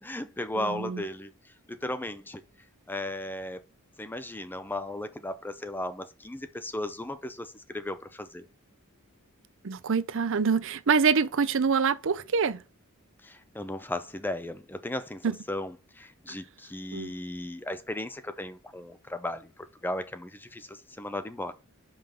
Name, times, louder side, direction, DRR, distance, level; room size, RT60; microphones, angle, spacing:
voice 1, 0.0-2.4 2.9-3.6 4.0-8.5 13.2-21.5, left 1 dB, 10° left, 0.5 m, -36 dB
voice 2, 0.6-1.0 9.6-12.6 15.2-15.3 16.9-17.1, right 5 dB, 60° right, 0.6 m, -25 dB
5.7 x 5.3 x 5.5 m
head